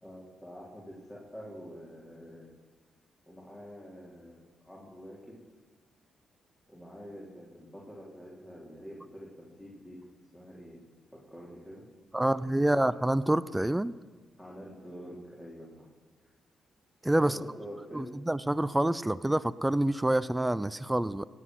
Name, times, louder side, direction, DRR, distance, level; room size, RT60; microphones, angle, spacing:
voice 1, 0.0-2.5 3.3-5.4 6.7-10.0 10.3-10.8 11.1-11.9 12.2-12.7 14.4-15.9 17.2-18.2, equal, 15° left, -5 dB, 3.7 m, -47 dB
voice 2, 12.1-13.9 17.0-17.4 17.9-21.2, right 1 dB, 10° right, 15 dB, 0.4 m, -27 dB
17.5 x 7.6 x 6.2 m, 1.4 s
supercardioid pair, 60°, 0 cm